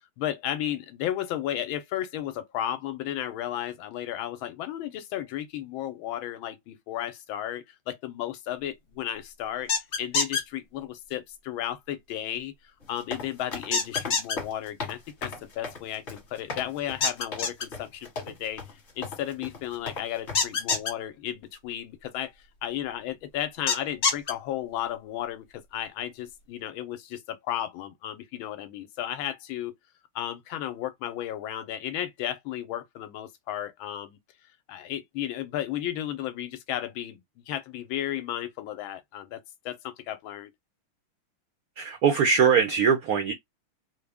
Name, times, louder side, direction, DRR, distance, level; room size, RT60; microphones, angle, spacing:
voice 1, 0.2-9.7 10.0-12.5 12.9-22.3 22.6-29.7 30.1-34.2 34.7-39.4 39.6-40.5, left 11 dB, 75° left, 1.3 m, -34 dB
sound 1, 9.7-10.4 13.7-14.4 17.0-17.6 20.3-20.9 23.7-24.3, left 5 dB, 60° left, 0.7 m, -25 dB
sound 2, 12.8-20.8, left 4 dB, 35° left, 1.4 m, -38 dB
voice 2, 41.8-43.3, right 6 dB, 85° right, 0.8 m, -21 dB
3.7 x 2.1 x 3.4 m
omnidirectional pair, 2.3 m